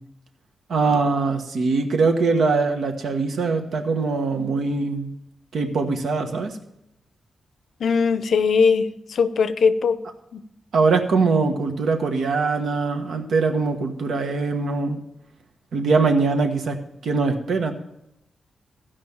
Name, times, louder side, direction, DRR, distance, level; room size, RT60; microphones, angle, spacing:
voice 1, 0.7-5.1 5.5-6.6 10.7-15.0 15.7-16.7 17.0-17.7, right 4 dB, 75° right, 1.3 m, -22 dB
voice 2, 7.8-10.0 10.3-10.4, left 5 dB, 70° left, 0.6 m, -20 dB
15.0 x 5.3 x 7.2 m
wide cardioid pair, 140°, 0 cm